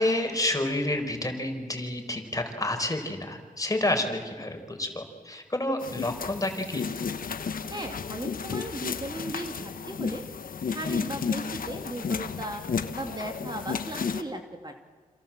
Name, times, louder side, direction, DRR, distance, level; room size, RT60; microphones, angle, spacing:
voice 1, 0.0-6.8 10.8-11.1, left 1 dB, 25° left, 4 dB, 5.4 m, -29 dB
sound 1, 5.8-14.2, left 6 dB, 75° left, 1.3 m, -33 dB
voice 2, 7.7-10.2 10.7-12.6 12.9-14.7, right 1 dB, 30° right, 3 dB, 2.8 m, -37 dB
27.5 x 27.5 x 7.7 m, 1.5 s
cardioid pair, 55°, 15 cm